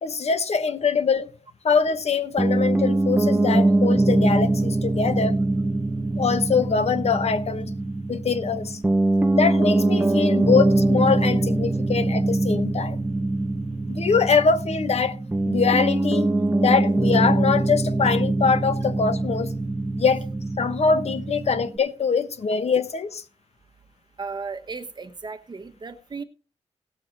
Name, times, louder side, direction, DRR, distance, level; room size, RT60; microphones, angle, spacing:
voice 1, 0.0-1.3 1.6-5.4 6.2-7.7 8.1-8.8 9.3-13.0 13.9-15.1 15.5-16.3 16.6-19.5 20.0-20.2 20.6-23.2, left 5 dB, 60° left, 1.1 m, -23 dB
Piano, 2.4-21.8, right 2 dB, 10° right, 1.0 m, -23 dB
voice 2, 24.2-26.2, right 4 dB, 35° right, 1.3 m, -35 dB
18.5 x 6.7 x 4.0 m
wide cardioid pair, 150°, 12 cm